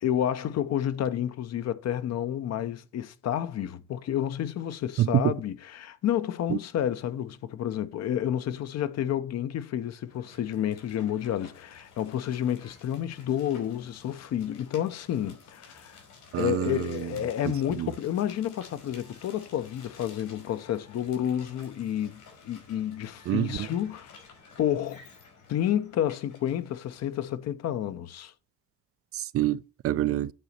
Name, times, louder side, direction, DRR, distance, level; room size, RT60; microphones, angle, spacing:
voice 1, 0.0-16.0 16.3-24.2 24.6-25.0 25.5-28.3, left 10 dB, 60° left, 0.8 m, -30 dB
voice 2, 5.0-5.3 6.5-6.6 16.3-16.9 17.8-17.9 23.3-23.6 29.1-30.3, right 14 dB, 50° right, 0.4 m, -26 dB
sound 1, 10.1-27.3, left 4 dB, 80° left, 4.4 m, -53 dB
8.9 x 4.1 x 6.5 m
cardioid pair, 105°, 30 cm